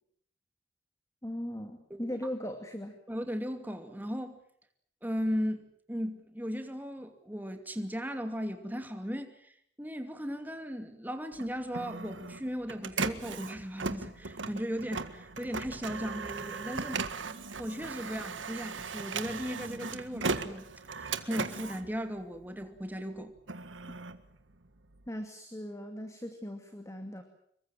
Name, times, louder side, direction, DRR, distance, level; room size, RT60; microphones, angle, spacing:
voice 1, 1.2-3.0 17.3-17.4 25.1-27.2, equal, 15° left, 6 dB, 2.4 m, -39 dB
voice 2, 3.1-4.4 5.0-9.5 9.8-17.2 17.6-20.7 21.0-23.3, equal, 10° right, 6 dB, 2.7 m, -37 dB
Printer, 11.3-22.8 23.2-25.1, right 4 dB, 85° right, 1.7 m, -38 dB
26.5 x 23.0 x 7.5 m, 0.68 s
head